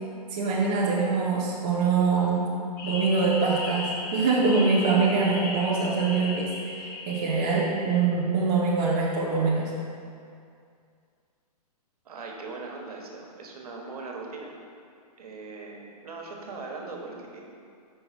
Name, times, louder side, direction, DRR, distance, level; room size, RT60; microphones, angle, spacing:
voice 1, 0.3-2.5 2.8-9.7, right 4 dB, 10° right, -6 dB, 0.3 m, -24 dB
sound 1, 2.8-8.0, left 2 dB, 30° left, 0.7 m, -36 dB
voice 2, 12.0-14.5 15.2-17.4, right 3 dB, 65° right, 0 dB, 1.2 m, -39 dB
5.4 x 4.4 x 5.9 m, 2.3 s
hypercardioid pair, 175°, 20 cm